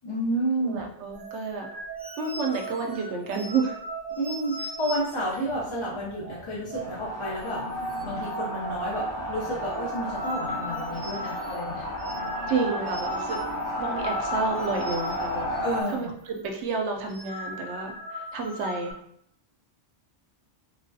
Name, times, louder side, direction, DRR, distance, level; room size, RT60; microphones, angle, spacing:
voice 1, 0.0-0.9 4.2-7.6 8.0-11.9 15.6-16.1, right 1 dB, 35° left, -6 dB, 0.5 m, -31 dB
voice 2, 0.6-1.7 2.2-3.8 12.5-13.4 13.8-15.5 15.9-19.0, right 4 dB, 80° right, 2 dB, 0.9 m, -30 dB
sound 1, 1.1-7.1 7.4-7.5 7.8-8.3 8.6-16.0 16.2-16.5 16.9-18.9, equal, 30° right, 0.5 m, -39 dB
sound 2, 6.7-15.8, equal, 80° left, 1.2 m, -32 dB
3.4 x 2.3 x 2.6 m, 0.68 s
omnidirectional pair, 1.2 m